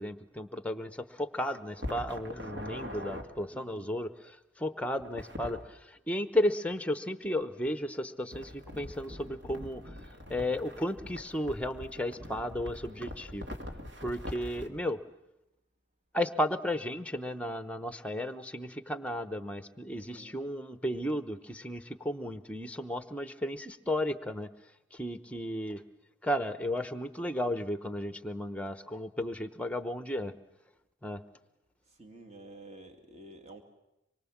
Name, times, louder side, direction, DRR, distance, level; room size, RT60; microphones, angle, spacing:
voice 1, 0.0-9.8 10.3-13.6 14.0-15.0 16.1-24.5 24.9-25.8 26.2-30.3 31.0-31.2, left 1 dB, 5° left, 11 dB, 0.8 m, -34 dB
sound 1, 1.8-3.2 5.0-5.6 8.3-14.7, left 1 dB, 70° right, 2.3 m, -43 dB
voice 2, 3.4-4.0 19.9-20.4 31.9-33.6, right 2 dB, 35° right, 4 dB, 2.1 m, -51 dB
25.5 x 22.5 x 7.3 m, 0.91 s
head